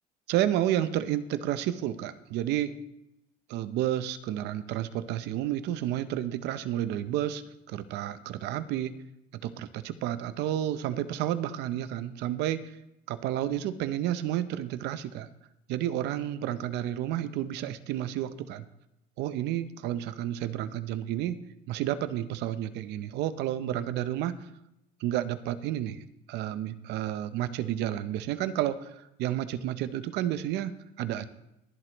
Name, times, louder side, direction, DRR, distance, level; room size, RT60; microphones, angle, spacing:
voice 1, 0.3-2.7 3.5-7.4 7.7-9.0 9.4-12.7 13.1-15.3 15.7-18.6 19.2-21.4 21.7-24.4 25.0-26.0 26.3-31.3, right 12 dB, 85° right, 13 dB, 0.7 m, -31 dB
22.5 x 7.7 x 3.0 m, 0.86 s
cardioid pair, 110°, 17 cm